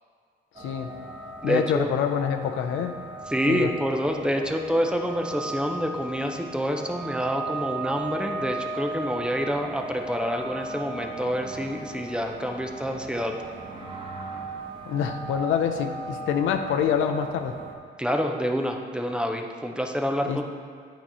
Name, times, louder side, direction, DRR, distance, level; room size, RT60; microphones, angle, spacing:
voice 1, 0.6-0.9 1.4-2.9 3.5-3.7 14.9-17.6 20.3-20.4, left 8 dB, 80° left, 6 dB, 0.5 m, -26 dB
sound 1, 0.6-17.8, right 2 dB, 25° right, 0.9 m, -37 dB
voice 2, 1.4-1.9 3.3-13.4 18.0-20.4, equal, 5° right, 3 dB, 0.5 m, -27 dB
8.6 x 3.0 x 5.4 m, 2.1 s
cardioid pair, 90°, 20 cm